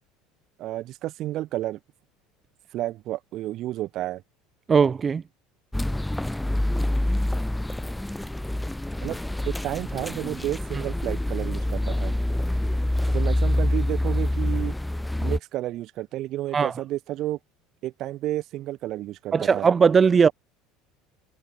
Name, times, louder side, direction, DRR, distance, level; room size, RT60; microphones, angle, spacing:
voice 1, 0.6-1.8 2.7-4.2 9.0-9.2 9.5-12.1 13.1-14.7 15.2-17.4 17.8-19.7, right 15 dB, 50° right, 6.4 m, -31 dB
voice 2, 4.7-5.2 16.5-16.7 19.3-20.3, right 6 dB, 30° right, 0.5 m, -19 dB
sound 1, 5.7-15.4, left 1 dB, 5° left, 0.8 m, -26 dB
figure-of-eight pair, 70°, 0 cm